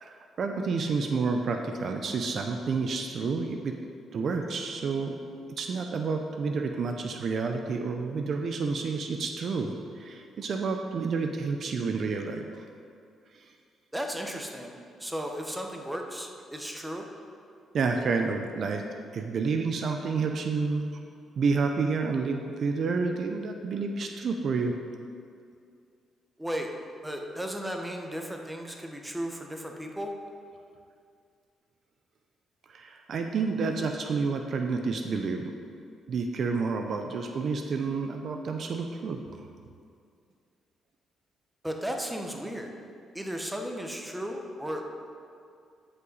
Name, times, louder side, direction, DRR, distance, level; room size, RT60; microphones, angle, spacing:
voice 1, 0.0-3.7 4.1-5.2 5.6-12.4 17.7-18.9 19.1-20.9 21.4-24.8 32.7-35.4 36.1-39.2, right 4 dB, 55° right, 4 dB, 0.6 m, -29 dB
voice 2, 13.9-17.1 26.4-26.7 27.0-30.1 41.6-42.7 43.1-44.8, equal, 5° right, 2 dB, 1.0 m, -35 dB
13.0 x 5.6 x 4.1 m, 2.3 s
cardioid pair, 90°, 0 cm